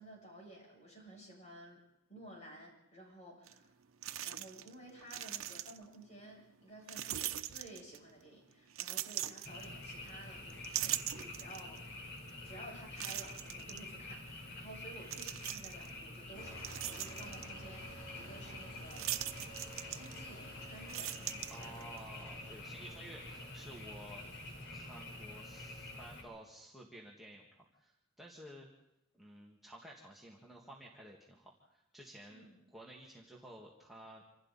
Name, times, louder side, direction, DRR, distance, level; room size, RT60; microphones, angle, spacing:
voice 1, 0.0-1.8 2.1-3.7 4.2-11.8 12.4-21.8 32.3-32.6, right 1 dB, 35° left, -1 dB, 7.9 m, -54 dB
sound 1, 3.5-3.6 4.0-4.7 5.0-6.0 6.9-8.1 8.7-10.1 10.5-11.8 12.3-12.4 13.0-13.8 15.0-15.9 16.4-17.5 18.9-20.4 20.7-22.0, right 12 dB, 85° right, 0.9 m, -40 dB
Frog, 9.4-26.2, left 2 dB, 60° left, 4.3 m, -48 dB
sound 2, 16.3-26.1, equal, 80° left, 3.7 m, -54 dB
voice 2, 21.5-24.2 24.7-27.5 27.8-28.7 29.1-34.2, right 1 dB, ahead, -4 dB, 1.9 m, -53 dB
27.0 x 26.5 x 4.2 m, 0.88 s
head